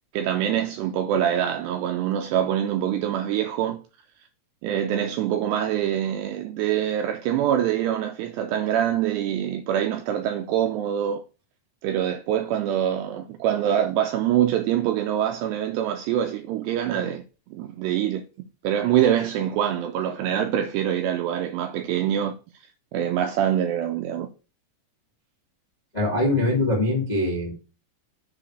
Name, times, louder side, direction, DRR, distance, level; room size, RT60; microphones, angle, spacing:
voice 1, 0.1-3.8 4.6-11.2 11.8-17.2 17.5-18.2 18.6-22.3 22.9-24.3, right 10 dB, 90° right, 2.4 m, -24 dB
voice 2, 25.9-27.5, left 1 dB, 70° left, 0.4 m, -23 dB
6.8 x 5.0 x 5.5 m
omnidirectional pair, 5.6 m